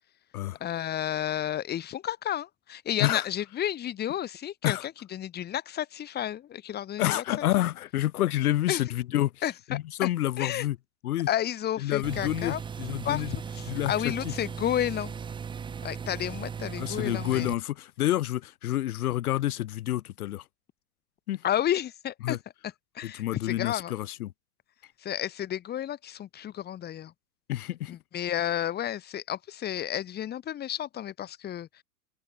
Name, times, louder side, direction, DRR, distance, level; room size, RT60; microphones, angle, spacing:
voice 1, 0.6-7.2 8.7-8.8 9.4-10.1 10.4-10.7 11.3-12.6 13.0-15.1 15.8-17.5 21.4-22.4 22.9-23.9 25.0-27.1 27.9-31.7, left 11 dB, 20° left, 2.8 m, -31 dB
voice 2, 7.0-9.4 9.7-10.8 11.0-11.3 11.8-13.3 13.7-13.9 14.2-14.3 16.8-20.4 21.3-21.4 22.2-22.4 23.0-24.3 27.5-27.9, left 14 dB, 70° left, 2.2 m, -28 dB
sound 1, 12.0-17.5, right 6 dB, 10° right, 1.1 m, -37 dB
open air
supercardioid pair, 150°, 46 cm